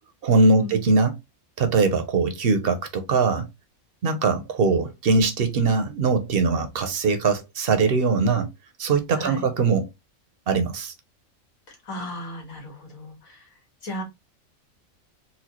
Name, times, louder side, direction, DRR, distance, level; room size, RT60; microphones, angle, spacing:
voice 1, 0.2-1.1 1.6-3.5 4.0-8.5 8.8-9.9 10.5-10.9, right 4 dB, 55° right, 0.7 m, -21 dB
voice 2, 11.9-13.4 13.8-14.0, left 1 dB, 90° left, 2.1 m, -34 dB
4.2 x 2.3 x 2.9 m
omnidirectional pair, 1.4 m